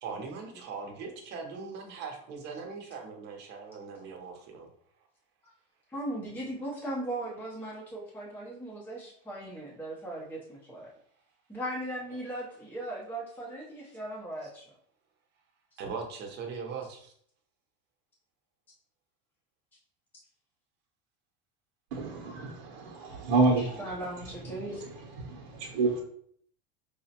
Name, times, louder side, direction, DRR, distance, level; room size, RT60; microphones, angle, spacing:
voice 1, 0.0-4.7 12.1-12.2 15.8-17.1, right 5 dB, 35° right, 0.7 m, -40 dB
voice 2, 5.9-10.9 11.5-14.7 23.6-24.8, right 1 dB, 5° left, 0.5 m, -38 dB
voice 3, 21.9-23.8 25.2-26.0, right 3 dB, 70° right, 0.7 m, -28 dB
4.8 x 2.1 x 2.7 m
supercardioid pair, 155°, 31 cm